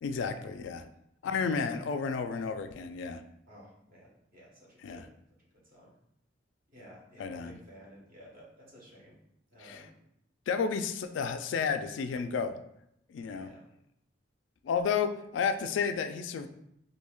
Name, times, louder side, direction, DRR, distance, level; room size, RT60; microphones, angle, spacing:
voice 1, 0.0-0.8 1.2-3.2 4.8-5.1 7.2-7.6 9.6-9.9 10.5-12.5 13.1-13.5 14.6-16.5, left 6 dB, 70° left, 7 dB, 0.3 m, -32 dB
voice 2, 3.5-5.1 5.6-5.9 6.7-9.2 9.5-9.9 13.3-13.7 15.0-15.1, equal, 50° right, -4 dB, 1.2 m, -53 dB
4.3 x 2.7 x 2.3 m, 0.77 s
head